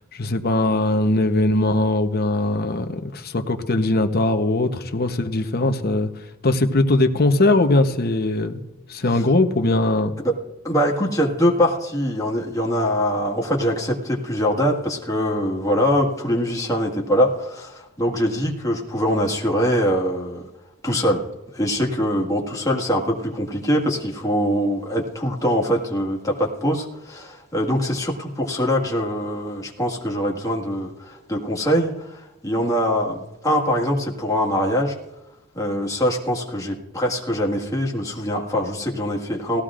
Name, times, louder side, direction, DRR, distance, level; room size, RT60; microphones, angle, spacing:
voice 1, 0.1-6.1 6.4-8.6 8.9-10.1, left 2 dB, 45° left, 6 dB, 0.9 m, -20 dB
voice 2, 10.6-20.5 20.8-21.2 21.5-33.2 33.4-35.0 35.6-39.6, equal, 15° left, -1 dB, 1.7 m, -23 dB
18.5 x 14.5 x 2.5 m, 1.0 s
head